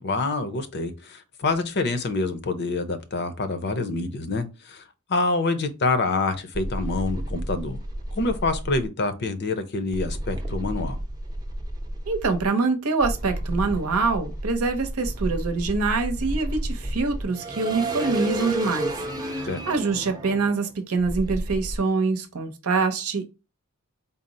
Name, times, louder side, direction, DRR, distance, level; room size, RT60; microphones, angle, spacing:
voice 1, 0.0-4.8 5.1-7.8 8.1-11.0 19.4-19.6, left 3 dB, 50° left, 0.6 m, -26 dB
sound 1, 6.5-8.8 9.9-12.5 13.0-21.8, right 1 dB, 20° right, 0.6 m, -31 dB
voice 2, 12.1-18.9 19.3-23.3, right 4 dB, 75° right, 0.7 m, -25 dB
4.1 x 2.0 x 3.8 m
head